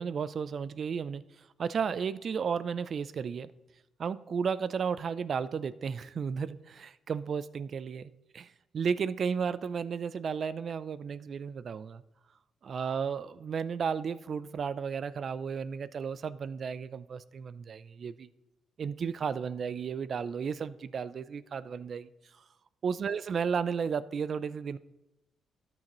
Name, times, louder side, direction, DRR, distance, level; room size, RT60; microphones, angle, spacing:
voice 1, 0.0-3.5 4.0-12.0 12.6-18.3 18.8-22.1 22.8-24.8, right 6 dB, 50° right, 16 dB, 0.4 m, -33 dB
13.0 x 8.9 x 3.1 m, 0.97 s
cardioid pair, 90°, 0 cm